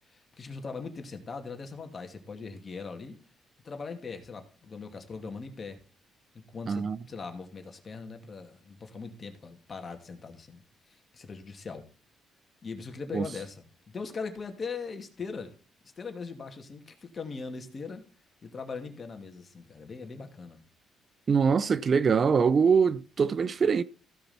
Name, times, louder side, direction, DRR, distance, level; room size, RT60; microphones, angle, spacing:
voice 1, 0.0-3.2 3.6-5.8 6.3-10.6 10.9-11.9 12.6-15.6 16.0-18.0 18.4-20.6, left 4 dB, 40° left, 2.5 m, -40 dB
voice 2, 6.7-7.0 13.1-13.2 21.3-23.8, right 6 dB, 45° right, 0.6 m, -23 dB
15.5 x 5.8 x 4.3 m
supercardioid pair, 70°, 0 cm